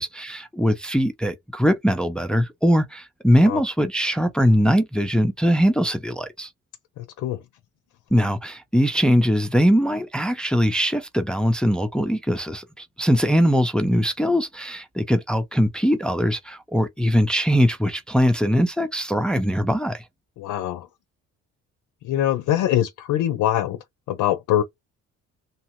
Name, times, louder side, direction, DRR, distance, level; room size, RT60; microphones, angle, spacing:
voice 1, 0.0-6.5 8.1-20.0, equal, 5° left, 0.5 m, -21 dB
voice 2, 20.4-20.9 22.0-23.8 24.1-24.6, left 12 dB, 80° left, 0.5 m, -23 dB
2.8 x 2.1 x 2.9 m
cardioid pair, 90°, 30 cm